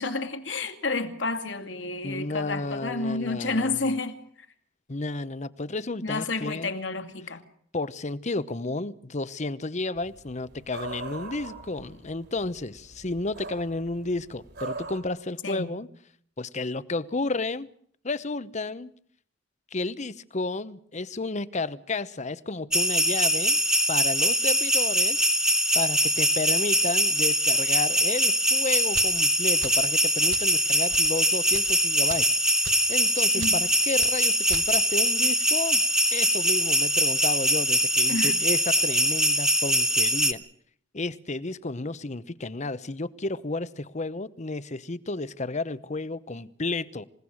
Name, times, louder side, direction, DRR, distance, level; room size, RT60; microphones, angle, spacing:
voice 1, 0.0-4.2 6.0-7.4 15.4-15.7 33.4-33.7 38.1-38.4, left 3 dB, 70° left, 2.6 m, -30 dB
voice 2, 2.0-3.8 4.9-6.7 7.7-15.9 16.4-17.7 18.0-18.9 19.7-23.6 23.9-25.2 25.7-32.3 32.9-35.8 36.1-40.4 40.9-47.1, left 3 dB, 40° left, 0.9 m, -32 dB
sound 1, 10.0-15.0, right 3 dB, 60° right, 5.1 m, -41 dB
sound 2, 22.7-40.3, equal, 5° right, 1.7 m, -23 dB
sound 3, 28.9-29.2 29.6-29.9 30.3-30.5 30.9-31.1 31.5-31.7 32.1-32.3 32.6-32.9 33.4-33.6 34.0-34.1 34.5-34.7, right 6 dB, 85° right, 1.4 m, -38 dB
28.0 x 17.5 x 6.4 m
head